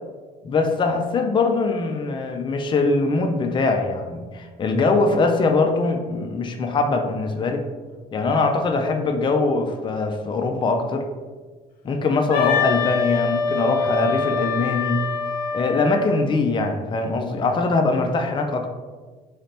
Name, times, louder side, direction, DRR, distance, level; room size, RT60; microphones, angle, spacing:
voice 1, 0.4-7.6 8.1-11.1 11.8-15.0 15.5-18.7, left 3 dB, 30° left, 4 dB, 0.4 m, -22 dB
Wind instrument woodwind instrument, 12.3-16.1, left 5 dB, 60° left, 0.9 m, -24 dB
4.0 x 3.3 x 2.8 m, 1.4 s
cardioid pair, 110°, 17 cm